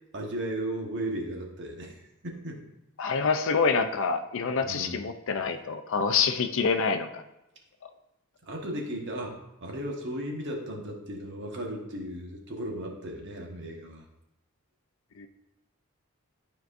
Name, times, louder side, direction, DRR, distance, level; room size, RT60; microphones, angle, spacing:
voice 1, 0.1-1.9 2.2-2.7 4.6-5.0 8.4-14.0, right 1 dB, 55° right, 0 dB, 1.3 m, -35 dB
voice 2, 3.0-7.2 15.2-15.3, left 5 dB, 65° left, 8 dB, 0.5 m, -26 dB
12.0 x 4.6 x 2.6 m, 0.90 s
head